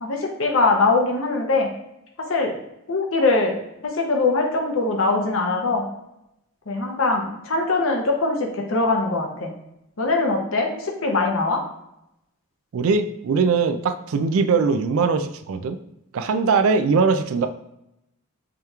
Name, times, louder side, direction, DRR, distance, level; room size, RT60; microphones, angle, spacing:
voice 1, 0.0-1.7 2.2-2.6 2.9-3.6 3.8-5.8 6.7-9.5 10.0-11.6, left 3 dB, 65° left, 1 dB, 0.7 m, -22 dB
voice 2, 12.7-15.8 16.1-17.5, right 5 dB, 70° right, 7 dB, 0.4 m, -21 dB
4.9 x 2.9 x 2.4 m, 0.84 s
head